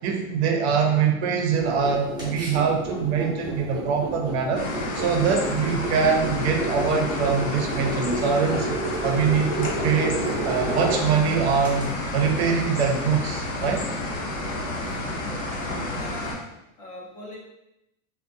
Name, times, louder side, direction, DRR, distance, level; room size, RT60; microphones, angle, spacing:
voice 1, 0.0-4.6 4.9-8.7 9.0-13.8, right 6 dB, 60° right, 2 dB, 0.6 m, -23 dB
sound 1, 1.5-11.9, right 2 dB, 15° right, 0.7 m, -31 dB
sound 2, 4.5-16.3, left 1 dB, 60° left, 0.9 m, -30 dB
voice 2, 14.5-16.4 16.8-17.4, left 2 dB, 20° left, -5 dB, 0.4 m, -41 dB
2.5 x 2.1 x 2.6 m, 0.87 s
supercardioid pair, 160°, 36 cm